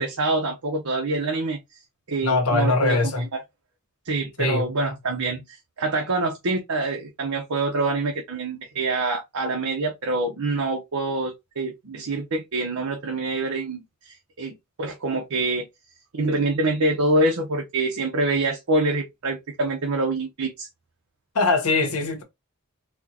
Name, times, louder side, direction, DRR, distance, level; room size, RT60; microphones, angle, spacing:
voice 1, 0.0-1.6 2.1-3.4 4.0-15.7 16.1-20.7, right 2 dB, 85° right, 0.8 m, -26 dB
voice 2, 2.2-3.3 4.4-4.6 21.3-22.2, left 3 dB, 90° left, 1.1 m, -21 dB
4.3 x 2.2 x 2.8 m
head